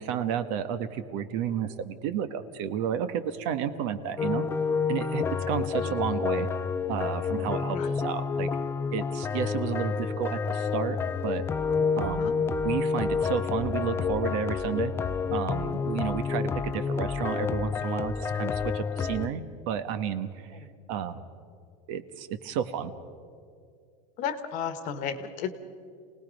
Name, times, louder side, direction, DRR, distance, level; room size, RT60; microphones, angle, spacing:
voice 1, 0.0-4.5 4.9-6.5 6.9-8.5 8.9-11.0 11.2-11.5 12.0-12.4 12.6-14.9 15.3-20.5 20.9-21.2 21.9-22.9, right 8 dB, 50° right, 10 dB, 1.3 m, -31 dB
sound 1, 4.2-19.3, left 5 dB, 15° left, 0.4 m, -29 dB
voice 2, 7.7-8.1 12.1-12.4 20.5-20.7 24.2-25.6, left 7 dB, 40° left, 10 dB, 1.4 m, -34 dB
28.0 x 19.0 x 5.3 m, 2.3 s
supercardioid pair, 155°, 20 cm